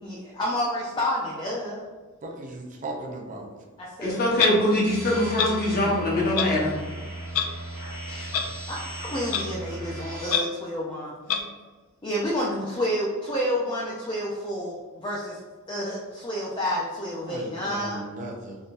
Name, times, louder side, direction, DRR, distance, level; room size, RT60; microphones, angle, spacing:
voice 1, 0.0-1.8 3.8-4.6 8.1-8.4 8.7-11.1 12.0-15.4 15.7-18.0, equal, 20° left, -5 dB, 0.4 m, -30 dB
voice 2, 2.2-3.5 5.8-5.9 17.2-18.6, right 2 dB, 35° right, 0 dB, 0.4 m, -37 dB
voice 3, 4.0-6.8, left 1 dB, 45° left, -4 dB, 0.9 m, -23 dB
Clock, 4.4-4.5 5.4-5.5 6.4-6.5 7.3-7.4 8.3-8.4 9.3-9.4 10.3-10.4 11.3-11.4, left 8 dB, 85° left, 0.4 m, -23 dB
sound 1, 4.8-10.3, right 1 dB, 10° right, 1.4 m, -37 dB
3.6 x 2.7 x 2.4 m, 1.3 s
head